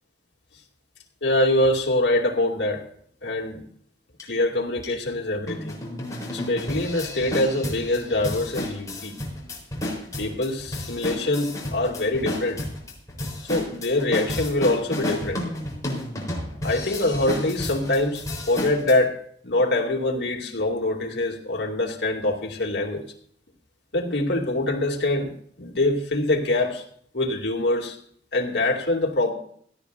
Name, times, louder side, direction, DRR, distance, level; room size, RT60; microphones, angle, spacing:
voice 1, 1.2-2.8 3.2-3.6 4.2-5.8 6.3-9.1 10.2-12.7 13.4-15.4 16.6-19.2 19.4-23.0 23.9-25.3 25.6-26.8 27.1-28.0 28.3-29.3, left 2 dB, 70° left, 0 dB, 2.5 m, -24 dB
sound 1, 4.2-4.3 4.8-4.9 5.5-19.0, left 1 dB, 20° left, 3.9 m, -32 dB
17.0 x 14.5 x 2.6 m, 0.62 s
head